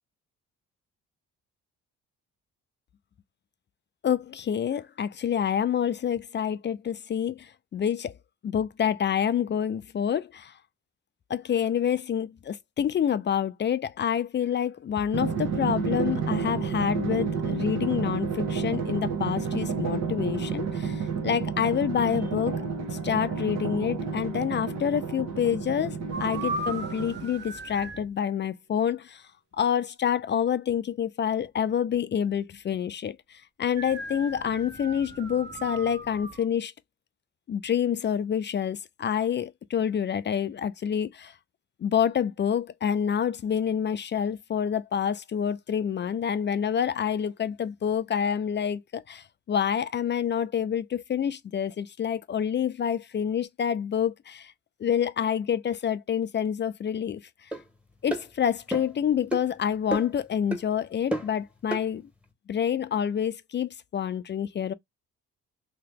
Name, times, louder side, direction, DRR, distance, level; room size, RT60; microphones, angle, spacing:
voice 1, 4.0-8.1 8.4-10.5 11.3-22.5 22.9-29.2 29.5-36.7 37.5-41.3 41.8-54.5 54.8-57.5 58.0-62.1 62.5-64.7, left 8 dB, 35° left, 0.4 m, -27 dB
Drum, 15.1-27.5, right 5 dB, 60° right, 1.2 m, -30 dB
sound 1, 26.1-28.1 33.7-36.5, right 2 dB, 35° right, 1.2 m, -37 dB
sound 2, 57.5-57.6 58.1-58.3 58.7-59.0 59.3-59.5 59.9-60.2 60.5-60.7 61.1-61.4 61.7-61.9, right 1 dB, 5° right, 1.2 m, -31 dB
2.9 x 2.7 x 3.4 m
cardioid pair, 90°, 30 cm